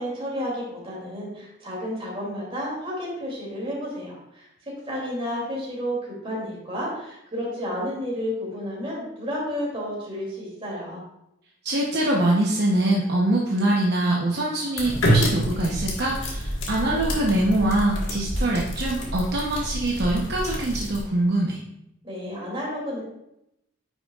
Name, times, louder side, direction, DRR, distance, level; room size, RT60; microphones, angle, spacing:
voice 1, 0.0-4.5 4.9-11.0 22.0-23.0, equal, 30° right, -4 dB, 2.6 m, -31 dB
voice 2, 11.6-21.6, right 1 dB, 55° right, -3 dB, 0.8 m, -23 dB
sound 1, 14.8-21.0, equal, 75° left, 1.6 m, -27 dB
9.2 x 6.1 x 2.4 m, 0.83 s
head